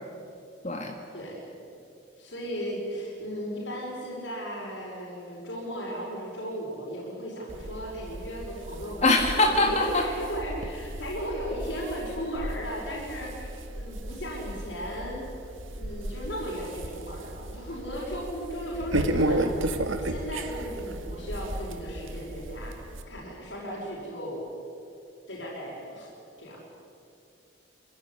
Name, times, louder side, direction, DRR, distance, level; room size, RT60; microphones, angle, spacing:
voice 1, 2.2-9.1 9.4-15.2 15.8-22.8 23.1-24.5 25.3-26.1 26.4-26.6, equal, 65° left, -4 dB, 5.8 m, -36 dB
sound 1, 7.5-23.0, right 1 dB, 80° right, 1.7 m, -34 dB
voice 2, 9.0-10.0, left 2 dB, 35° left, 2 dB, 1.9 m, -22 dB
26.0 x 16.0 x 10.0 m, 2.5 s
head